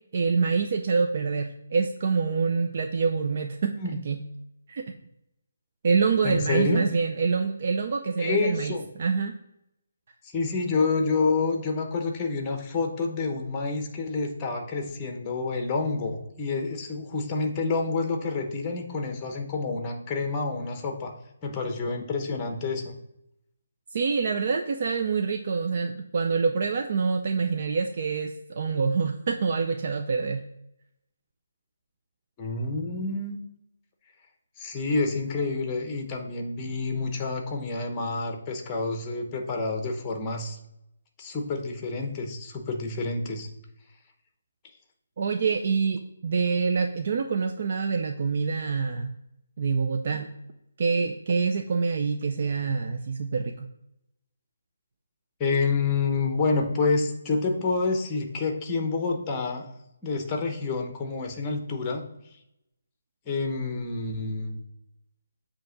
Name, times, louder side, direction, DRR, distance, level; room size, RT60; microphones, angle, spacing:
voice 1, 0.1-4.2 4.7-4.8 5.8-9.3 23.9-30.5 45.2-49.1 49.6-50.3 50.8-53.7, right 5 dB, 45° right, 5 dB, 0.5 m, -26 dB
voice 2, 6.2-6.8 8.2-8.9 10.3-21.1 21.4-22.9 32.4-33.4 34.6-40.6 41.2-43.5 50.1-50.2 55.4-59.7 60.0-62.1 63.3-64.6, left 3 dB, 15° left, 3 dB, 0.9 m, -28 dB
7.6 x 2.9 x 5.8 m, 0.82 s
hypercardioid pair, 165°, 0 cm